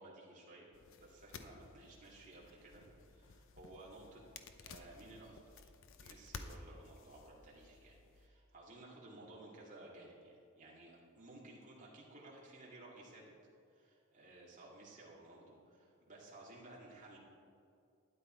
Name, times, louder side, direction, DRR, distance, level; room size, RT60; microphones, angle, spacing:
voice 1, 0.0-4.2 4.6-5.6 6.0-13.3 13.7-17.2, right 2 dB, 35° right, -4 dB, 2.6 m, -56 dB
sound 1, 0.7-8.3, left 4 dB, 60° left, 0.7 m, -55 dB
12.5 x 9.8 x 4.5 m, 2.5 s
head